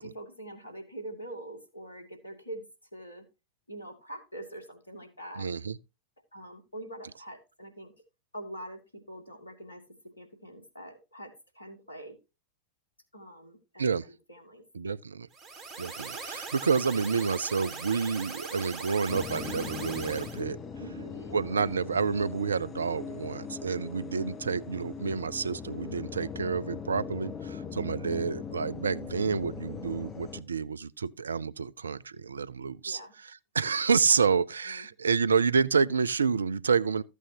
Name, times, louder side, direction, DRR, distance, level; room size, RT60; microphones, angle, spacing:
voice 1, 0.0-2.6 2.9-3.2 3.7-5.5 6.3-7.9 8.3-12.2 13.1-13.8 14.3-14.6 20.8-21.4 32.8-33.1 34.7-34.9, right 1 dB, 80° left, 2.4 m, -44 dB
voice 2, 5.4-5.8 13.8-14.0 14.7-15.3 15.8-20.6 21.3-37.0, right 5 dB, 70° right, 0.4 m, -29 dB
sound 1, 15.3-20.4, right 4 dB, 30° right, 3.3 m, -41 dB
sound 2, 19.1-30.4, left 6 dB, 25° left, 1.0 m, -40 dB
14.0 x 8.2 x 2.8 m
figure-of-eight pair, 90°, 0 cm